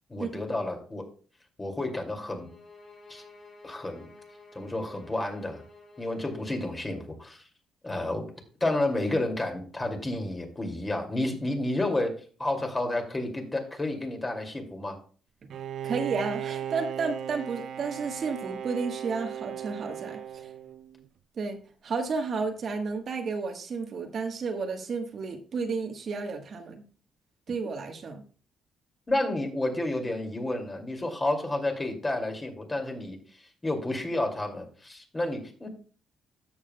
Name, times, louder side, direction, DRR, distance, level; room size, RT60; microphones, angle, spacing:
voice 1, 0.1-1.0 1.6-2.5 3.1-3.2 3.6-4.1 4.5-5.6 6.0-7.4 7.8-8.2 8.6-12.1 12.4-15.0 29.1-35.7, left 2 dB, 20° left, 3 dB, 2.3 m, -30 dB
sound 1, 2.3-7.2, left 3 dB, 45° left, 4.1 m, -52 dB
Bowed string instrument, 15.5-21.1, right 9 dB, 70° right, 0.5 m, -37 dB
voice 2, 15.8-20.5 21.4-21.6 21.8-26.8 27.5-28.2, right 4 dB, 55° right, 5 dB, 1.2 m, -32 dB
13.0 x 7.2 x 2.2 m, 0.40 s
cardioid pair, 90°, 0 cm